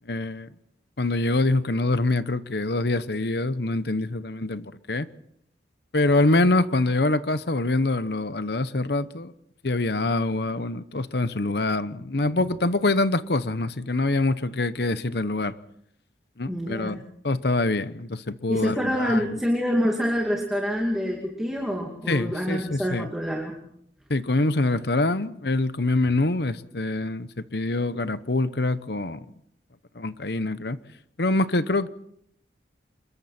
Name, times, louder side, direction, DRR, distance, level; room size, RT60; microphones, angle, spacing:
voice 1, 0.1-0.5 1.0-5.1 5.9-9.3 9.6-15.5 16.4-17.0 17.2-19.2 22.1-23.1 24.1-29.2 29.9-30.8 31.2-31.9, left 2 dB, 60° left, 1.0 m, -25 dB
voice 2, 16.5-17.0 18.5-23.6, equal, ahead, 2.6 m, -26 dB
27.5 x 22.0 x 4.4 m
head